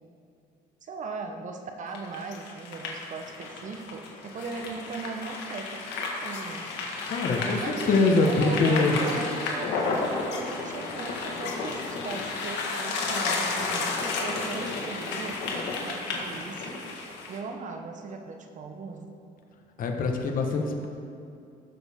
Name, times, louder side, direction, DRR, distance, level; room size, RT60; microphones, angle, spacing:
voice 1, 0.8-6.8 7.6-16.9 17.3-19.1, right 3 dB, 45° right, 5 dB, 1.0 m, -38 dB
sound 1, 1.9-17.4, left 3 dB, 90° left, 1.6 m, -32 dB
voice 2, 7.1-8.9 19.8-20.9, left 3 dB, 55° left, 2 dB, 1.3 m, -24 dB
15.0 x 7.0 x 3.6 m, 2.5 s
cardioid pair, 110°, 17 cm